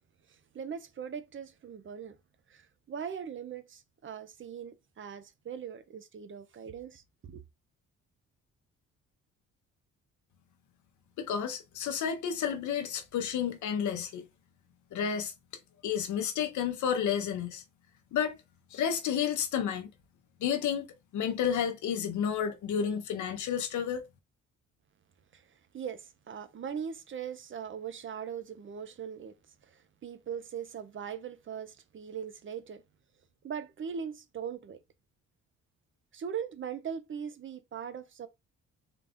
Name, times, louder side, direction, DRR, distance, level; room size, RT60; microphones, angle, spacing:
voice 1, 0.3-2.2 2.5-7.4 25.3-29.4 29.6-32.8 33.4-34.8 36.1-38.3, right 7 dB, 40° right, 0.7 m, -40 dB
voice 2, 11.2-14.2 14.9-15.3 15.8-17.6 18.1-18.4 18.7-19.9 20.4-20.9 21.1-24.1, left 8 dB, 75° left, 0.8 m, -31 dB
3.9 x 2.4 x 3.5 m
cardioid pair, 90°, 30 cm